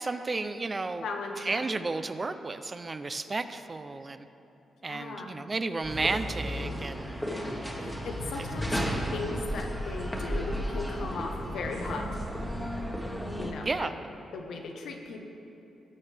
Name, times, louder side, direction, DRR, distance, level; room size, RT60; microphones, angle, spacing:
voice 1, 0.0-1.0 1.4-4.3 4.8-7.1 7.6-7.8 8.4-8.5 13.6-13.9, right 3 dB, 30° right, 10 dB, 0.5 m, -32 dB
voice 2, 1.0-1.6 4.9-5.4 7.3-8.7 9.1-12.2 13.4-13.9 14.3-15.2, left 3 dB, 80° left, 3 dB, 1.0 m, -37 dB
sound 1, 5.8-13.5, equal, 5° left, 1.3 m, -33 dB
18.5 x 6.4 x 3.4 m, 2.9 s
cardioid pair, 95°, 0 cm